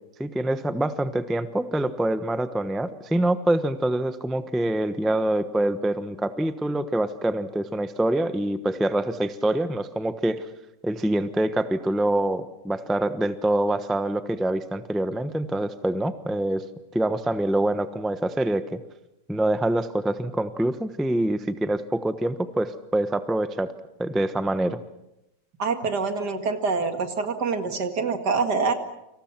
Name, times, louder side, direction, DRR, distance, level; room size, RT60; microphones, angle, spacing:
voice 1, 0.2-10.5 10.8-16.7 16.9-18.8 19.3-23.7 24.0-24.8, right 1 dB, ahead, 10 dB, 0.7 m, -25 dB
voice 2, 25.6-28.7, right 4 dB, 65° right, 7 dB, 2.6 m, -25 dB
29.5 x 26.5 x 6.0 m, 0.87 s
omnidirectional pair, 2.0 m